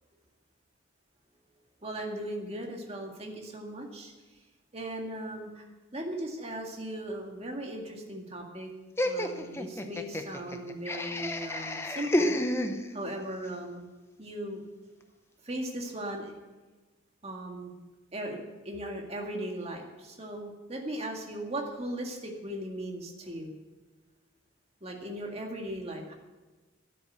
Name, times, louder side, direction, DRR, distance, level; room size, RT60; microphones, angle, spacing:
voice 1, 1.8-4.1 4.7-5.7 5.9-8.7 9.0-12.4 12.9-13.9 14.2-14.6 15.4-16.3 17.2-17.8 18.1-23.5 24.8-26.1, right 1 dB, 30° right, 1 dB, 2.0 m, -38 dB
Laughter, 9.0-13.2, left 1 dB, 10° left, 0.7 m, -31 dB
12.5 x 10.0 x 8.0 m, 1.3 s
head